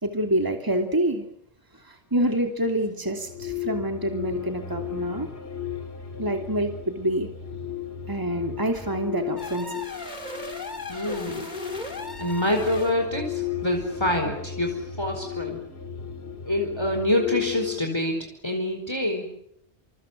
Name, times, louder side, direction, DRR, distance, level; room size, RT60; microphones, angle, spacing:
voice 1, 0.0-1.3 1.8-5.3 6.2-7.3 8.1-9.7 14.0-14.1, right 1 dB, 20° right, 4 dB, 2.9 m, -27 dB
sound 1, 3.1-17.8, left 9 dB, 70° left, 3.0 m, -35 dB
sound 2, 9.4-13.0, left 2 dB, 40° left, 3.2 m, -36 dB
voice 2, 10.9-11.5 12.2-15.6 16.5-18.1 18.4-19.2, left 1 dB, 25° left, 2 dB, 4.8 m, -26 dB
28.0 x 27.5 x 7.7 m, 0.74 s
omnidirectional pair, 1.1 m